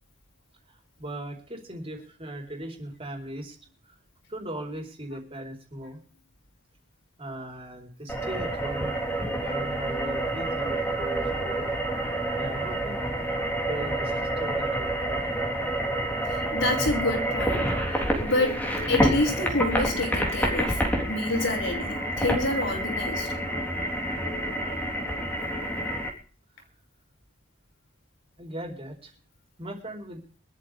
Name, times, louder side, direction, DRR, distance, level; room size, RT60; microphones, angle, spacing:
voice 1, 1.0-3.6 4.3-6.0 7.2-9.0 9.4-11.7 12.4-13.2 13.7-15.3 28.4-29.1 29.6-30.2, right 1 dB, 30° right, 4.6 m, -38 dB
sound 1, 8.1-26.1, right 1 dB, 10° left, 3.9 m, -28 dB
voice 2, 16.5-17.7 18.2-23.3, left 2 dB, 65° left, 6.2 m, -28 dB
24.5 x 13.5 x 3.6 m
head